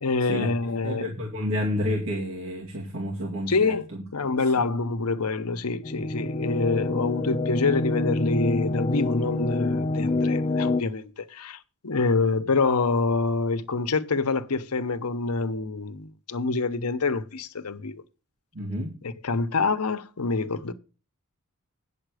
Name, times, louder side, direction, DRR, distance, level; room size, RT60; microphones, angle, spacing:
voice 1, 0.0-1.1 3.4-3.8 4.1-18.0 19.0-20.7, left 3 dB, 85° left, 0.9 m, -26 dB
voice 2, 0.8-4.0 18.5-18.9, left 1 dB, 65° right, 2.3 m, -30 dB
sound 1, 5.8-10.8, left 2 dB, 25° left, 0.5 m, -27 dB
9.2 x 7.2 x 4.9 m
head